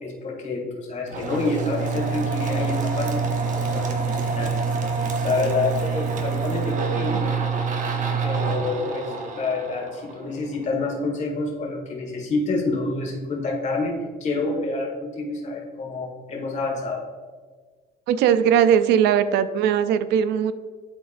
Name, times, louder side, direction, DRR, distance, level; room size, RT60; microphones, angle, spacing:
voice 1, 0.0-4.5 5.0-7.3 8.2-17.0, left 3 dB, 45° left, 0 dB, 1.7 m, -28 dB
sound 1, 1.1-10.6, right 5 dB, 50° right, 0.9 m, -26 dB
voice 2, 18.1-20.5, right 8 dB, 80° right, 12 dB, 0.4 m, -19 dB
11.5 x 3.9 x 2.6 m, 1.5 s
cardioid pair, 110°, 17 cm